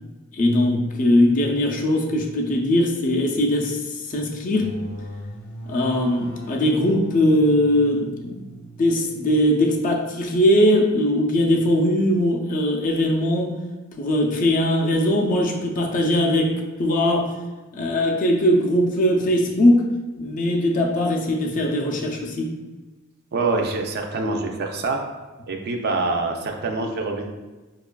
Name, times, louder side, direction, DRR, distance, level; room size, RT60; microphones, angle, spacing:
voice 1, 0.3-4.7 5.7-8.5 8.8-13.6 14.0-17.3 17.7-19.9 20.2-22.5, left 1 dB, 40° left, 1 dB, 0.4 m, -20 dB
sound 1, 4.4-9.9, equal, 90° left, 0.7 m, -40 dB
voice 2, 23.3-25.0 25.5-27.3, right 3 dB, 50° right, 2 dB, 0.4 m, -25 dB
4.9 x 2.4 x 2.2 m, 1.2 s
head